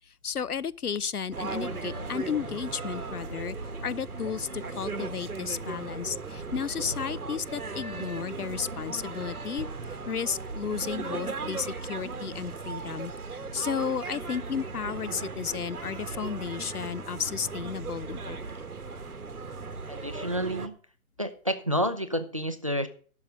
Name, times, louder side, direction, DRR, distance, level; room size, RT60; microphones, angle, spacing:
voice 1, 0.2-3.6 3.8-9.7 10.1-18.4, left 7 dB, 90° left, 0.7 m, -33 dB
sound 1, 1.3-20.7, right 4 dB, 80° right, 1.4 m, -37 dB
sound 2, 1.5-7.5, left 3 dB, 20° left, 0.6 m, -48 dB
voice 2, 19.9-20.7 21.2-22.9, equal, 25° right, 0.5 m, -29 dB
11.5 x 6.4 x 6.1 m
figure-of-eight pair, 145°, 44 cm